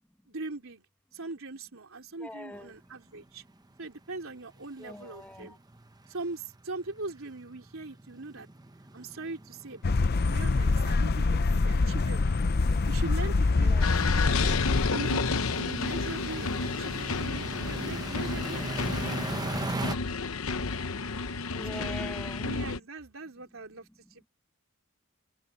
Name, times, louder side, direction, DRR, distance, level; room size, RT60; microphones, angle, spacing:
voice 1, 0.3-0.9 1.1-3.4 3.8-5.6 6.1-8.5 8.9-12.3 12.9-13.8 14.0-14.6 14.9-15.2 15.6-19.2 19.7-19.9 21.7-21.9 22.4-24.3, right 3 dB, 70° right, 4.0 m, -41 dB
voice 2, 2.2-2.7 4.8-5.6 13.6-14.2 21.5-22.5 24.0-24.3, left 1 dB, 5° left, 1.7 m, -44 dB
sound 1, 2.8-2.9 3.2-3.4 3.8-3.9 4.1-20.0, right 2 dB, 20° right, 1.0 m, -40 dB
sound 2, 9.8-14.9, left 3 dB, 50° left, 0.6 m, -25 dB
sound 3, 13.8-22.8, left 4 dB, 80° left, 1.0 m, -31 dB
head